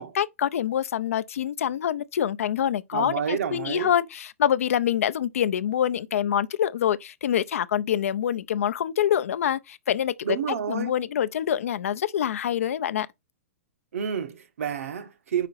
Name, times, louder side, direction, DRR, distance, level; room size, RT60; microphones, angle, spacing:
voice 1, 0.2-10.1 10.7-13.1, left 10 dB, 75° left, 0.5 m, -25 dB
voice 2, 2.9-3.9 10.2-10.9 13.9-15.5, right 8 dB, 80° right, 0.9 m, -29 dB
5.0 x 4.8 x 4.1 m
hypercardioid pair, 160°, 8 cm